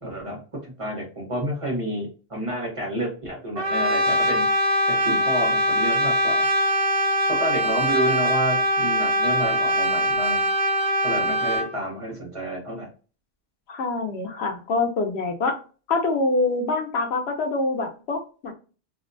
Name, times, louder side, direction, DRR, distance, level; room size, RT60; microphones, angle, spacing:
voice 1, 0.0-4.5 4.9-6.4 7.4-10.4 11.0-12.9, right 1 dB, 35° right, -3 dB, 1.0 m, -30 dB
Brass instrument, 3.6-11.7, equal, 70° right, 1.0 m, -22 dB
voice 2, 13.7-15.6 15.9-18.5, left 3 dB, 90° left, 3 dB, 0.9 m, -25 dB
2.6 x 2.1 x 2.5 m, 0.36 s
omnidirectional pair, 1.1 m